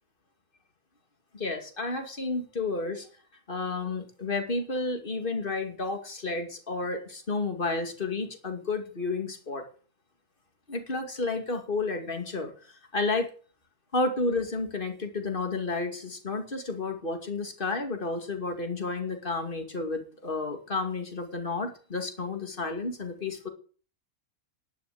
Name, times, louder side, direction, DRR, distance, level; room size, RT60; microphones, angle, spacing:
voice 1, 1.3-3.1 3.5-9.7 10.7-13.3 13.9-23.5, left 3 dB, 35° left, 5 dB, 2.5 m, -31 dB
11.5 x 9.4 x 7.9 m, 0.41 s
omnidirectional pair, 1.5 m